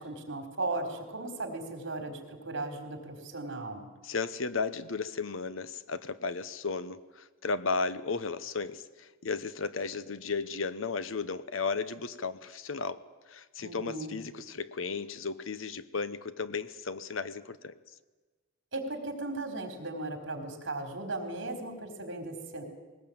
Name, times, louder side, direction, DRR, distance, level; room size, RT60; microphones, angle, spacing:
voice 1, 0.0-3.9 13.6-14.2 18.7-22.6, right 2 dB, 65° right, 4 dB, 4.2 m, -37 dB
voice 2, 4.0-13.0 13.3-17.8, left 4 dB, 80° left, 14 dB, 1.0 m, -34 dB
20.5 x 19.0 x 8.8 m, 1.3 s
head